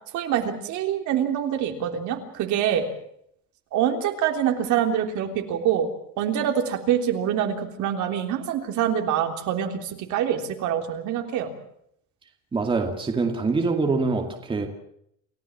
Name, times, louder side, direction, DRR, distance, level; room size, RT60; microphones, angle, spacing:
voice 1, 0.1-2.9 3.7-5.9 6.2-11.5, right 9 dB, 60° right, 4 dB, 3.5 m, -25 dB
voice 2, 12.5-14.7, right 3 dB, 15° right, 3 dB, 2.3 m, -24 dB
29.0 x 16.0 x 7.3 m, 0.72 s
cardioid pair, 165°, 34 cm